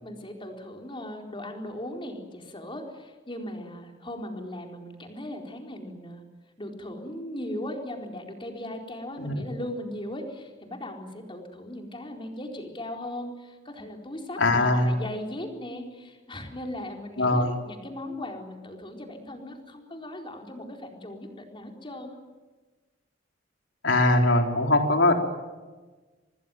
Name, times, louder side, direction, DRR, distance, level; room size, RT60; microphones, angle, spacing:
voice 1, 0.0-6.2 6.6-22.2, left 1 dB, 25° left, 2 dB, 4.3 m, -38 dB
voice 2, 14.4-14.9 17.2-17.5 23.8-25.1, left 2 dB, 80° left, 3 dB, 4.1 m, -21 dB
26.5 x 19.5 x 9.3 m, 1.3 s
head